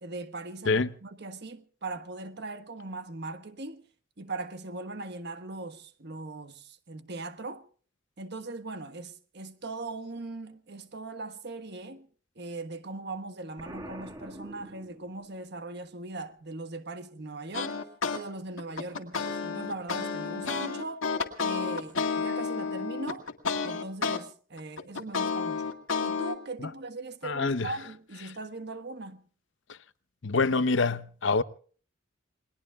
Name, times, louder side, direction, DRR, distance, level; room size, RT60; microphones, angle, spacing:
voice 1, 0.0-3.8 4.2-7.6 8.2-12.1 12.3-17.8 18.1-21.0 21.4-23.3 23.6-29.3, right 2 dB, 55° right, 1.4 m, -40 dB
Explosion, 13.6-15.4, right 1 dB, 20° right, 1.7 m, -44 dB
sound 1, 17.5-18.2 18.6-24.2 24.6-26.3, left 5 dB, 80° left, 2.1 m, -31 dB
voice 2, 27.2-27.7 30.2-31.4, left 3 dB, 60° left, 0.7 m, -26 dB
29.0 x 21.0 x 2.3 m
head